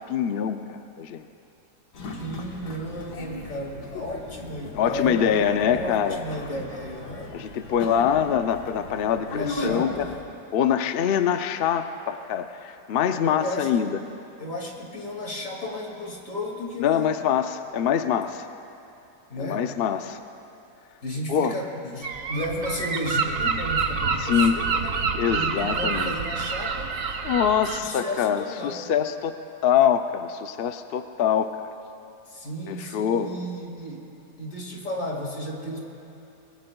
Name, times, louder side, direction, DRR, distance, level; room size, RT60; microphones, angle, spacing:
voice 1, 0.1-1.3 4.7-6.2 7.3-10.1 10.5-14.0 16.8-18.5 19.4-20.2 21.3-21.6 24.2-24.6 25.2-26.1 27.2-29.3 29.6-31.6 32.7-33.4, left 8 dB, 70° left, 8 dB, 0.5 m, -24 dB
sound 1, 1.9-10.2, left 2 dB, 85° left, 2.0 m, -37 dB
voice 2, 2.2-7.4 9.3-10.2 13.2-13.9 14.4-17.3 19.3-19.7 21.0-26.9 27.7-28.8 32.3-34.1 34.4-35.8, equal, 55° left, -1 dB, 2.6 m, -34 dB
Gull seagull, 22.0-27.8, right 5 dB, 60° right, 1.2 m, -27 dB
24.5 x 20.5 x 2.3 m, 2.9 s
omnidirectional pair, 1.7 m